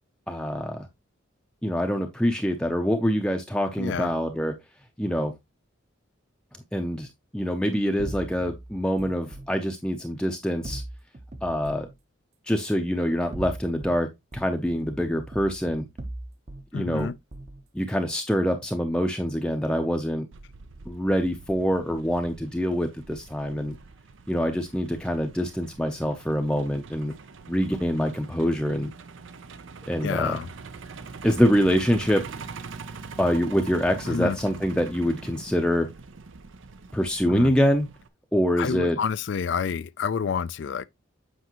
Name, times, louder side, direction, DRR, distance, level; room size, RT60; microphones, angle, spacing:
voice 1, 0.3-0.9 1.6-4.6 5.0-5.3 6.7-10.8 11.4-11.9 12.5-15.9 16.7-17.1 17.7-20.3 20.9-23.8 24.3-27.1 27.5-28.9 29.9-30.4 31.2-32.3 33.2-35.9 36.9-37.9 38.3-39.0, equal, 5° left, 0.6 m, -25 dB
voice 2, 3.8-4.1 16.7-17.1 30.0-30.5 34.1-34.4 37.3-37.5 38.6-40.9, left 6 dB, 60° left, 0.4 m, -28 dB
sound 1, 8.0-9.5 10.6-12.0 13.1-14.0 14.3-16.7 17.0-17.6, right 1 dB, 35° right, 0.8 m, -39 dB
Truck, 20.3-38.1, right 4 dB, 70° right, 0.6 m, -43 dB
8.1 x 5.2 x 2.9 m
head